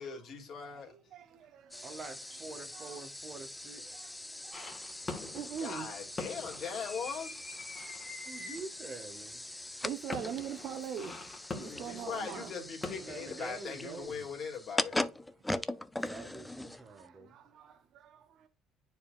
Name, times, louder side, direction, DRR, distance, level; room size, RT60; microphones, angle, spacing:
voice 1, 0.0-0.9 5.6-7.3 11.6-15.0, left 6 dB, 50° left, 2.6 m, -40 dB
voice 2, 1.1-2.0 2.7-3.0 3.8-4.1 4.4-4.8 5.3-5.9 9.8-11.3 11.6-12.5 16.9-18.5, right 8 dB, 60° right, 0.8 m, -42 dB
sound 1, 1.7-17.1, left 1 dB, 10° left, 0.4 m, -41 dB
voice 3, 1.8-3.8 8.3-9.4 13.0-14.3 16.0-17.4, right 3 dB, 35° right, 1.8 m, -46 dB
sound 2, 4.5-14.2, left 3 dB, 25° left, 1.8 m, -45 dB
10.0 x 4.7 x 2.5 m
cardioid pair, 105°, 0 cm